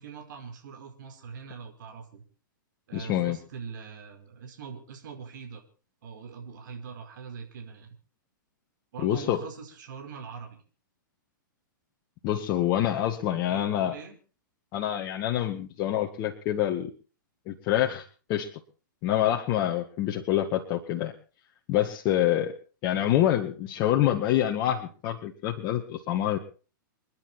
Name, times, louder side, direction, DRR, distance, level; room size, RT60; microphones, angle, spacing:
voice 1, 0.0-2.2 2.9-5.6 6.0-7.9 8.9-10.6 13.5-14.2 22.9-23.2, right 6 dB, 65° right, 3 dB, 5.1 m, -42 dB
voice 2, 2.9-3.4 9.0-9.4 12.2-13.9 14.7-16.9 17.5-18.0 18.3-18.5 19.0-21.1 21.7-22.5 22.8-26.4, left 12 dB, 40° left, 2 dB, 2.0 m, -26 dB
29.0 x 10.5 x 4.4 m, 0.39 s
hypercardioid pair, 130°, 11 cm